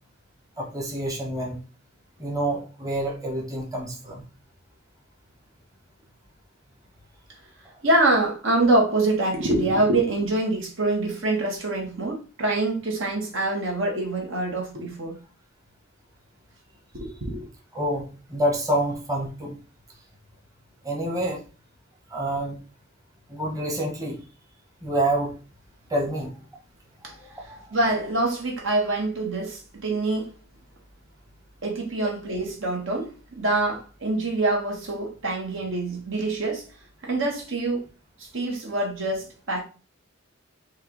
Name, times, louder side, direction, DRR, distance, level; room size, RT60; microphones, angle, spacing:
voice 1, 0.6-1.6 2.2-4.2 17.7-19.6 20.8-21.4 22.1-22.6 23.3-24.2 24.8-25.3 25.9-26.3 27.3-27.7, right 1 dB, 15° right, 1.1 m, -27 dB
voice 2, 7.8-15.2 16.9-17.5 27.0-27.1 27.4-30.3 31.6-36.7 37.0-37.9 38.2-39.6, right 2 dB, 65° right, 1.5 m, -25 dB
4.6 x 2.5 x 4.5 m
head